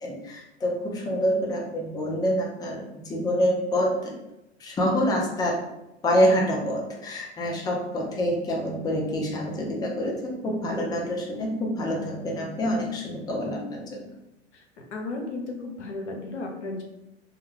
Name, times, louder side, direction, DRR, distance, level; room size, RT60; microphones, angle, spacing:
voice 1, 0.0-4.1 4.6-5.6 6.0-14.1, equal, 10° left, -2 dB, 0.5 m, -26 dB
voice 2, 14.9-16.8, left 2 dB, 85° left, 1 dB, 0.7 m, -34 dB
2.3 x 2.2 x 3.1 m, 0.90 s
hypercardioid pair, 100°, 34 cm